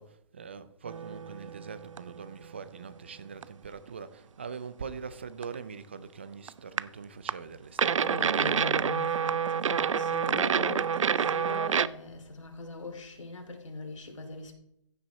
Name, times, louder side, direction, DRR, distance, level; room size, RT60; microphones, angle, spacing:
voice 1, 0.0-8.1, right 5 dB, 25° right, 0.4 m, -43 dB
sound 1, 0.9-2.2 2.5-2.6 3.4-3.5 3.9-4.0 5.4-5.5 6.5-6.8 7.3-7.4 7.8-11.9, right 7 dB, 85° right, 0.5 m, -28 dB
voice 2, 8.0-14.5, left 3 dB, 85° left, 2.6 m, -41 dB
15.0 x 6.1 x 4.1 m
hypercardioid pair, 175°, 16 cm